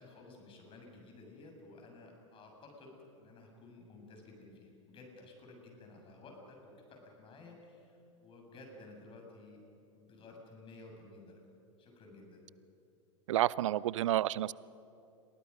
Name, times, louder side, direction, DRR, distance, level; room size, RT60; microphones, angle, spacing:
voice 1, 0.0-9.6 9.9-11.4 11.8-12.4, left 2 dB, 30° left, 1 dB, 6.7 m, -54 dB
voice 2, 13.3-14.5, right 13 dB, 65° right, 21 dB, 0.6 m, -30 dB
29.5 x 23.0 x 5.5 m, 2.7 s
figure-of-eight pair, 90°, 17 cm